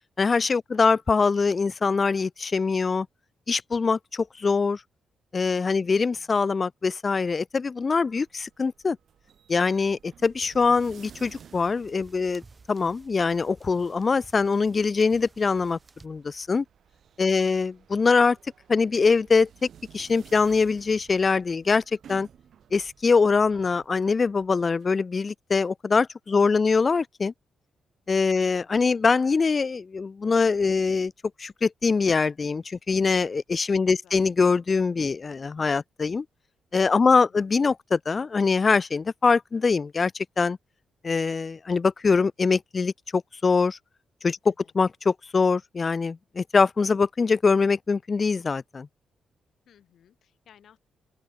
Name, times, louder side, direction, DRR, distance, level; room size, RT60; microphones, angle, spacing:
voice 1, 0.2-3.1 3.5-4.8 5.3-9.0 9.5-12.4 12.7-16.6 17.2-18.4 18.7-19.7 19.9-21.8 22.1-22.3 22.7-27.3 28.1-31.1 31.4-36.2 36.7-40.6 41.0-43.8 44.2-48.9, left 4 dB, 35° left, 0.5 m, -23 dB
voice 2, 0.7-1.0 5.8-6.4 17.4-17.7 26.4-26.9 33.9-34.3 37.1-37.5 44.4-44.7 49.7-50.8, left 9 dB, 70° left, 4.0 m, -59 dB
sound 1, 7.8-24.9, right 8 dB, 65° right, 7.0 m, -54 dB
sound 2, 10.8-16.1, right 3 dB, 30° right, 7.1 m, -55 dB
open air
cardioid pair, 85°, 0 cm